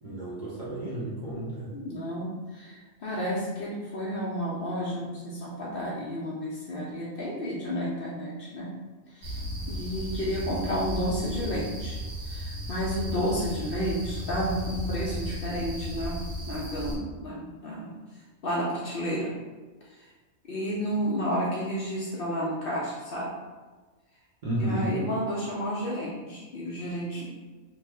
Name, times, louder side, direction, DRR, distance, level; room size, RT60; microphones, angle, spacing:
voice 1, 0.0-1.7 24.4-24.9, right 1 dB, 45° right, -7 dB, 0.7 m, -31 dB
voice 2, 1.7-8.7 9.1-9.4 9.7-12.0 12.2-18.0 18.4-19.3 20.5-23.3 24.6-27.3, equal, 55° left, -5 dB, 0.7 m, -31 dB
sound 1, 9.2-17.0, equal, 65° right, 1.2 m, -35 dB
3.0 x 2.0 x 3.4 m, 1.3 s
omnidirectional pair, 1.3 m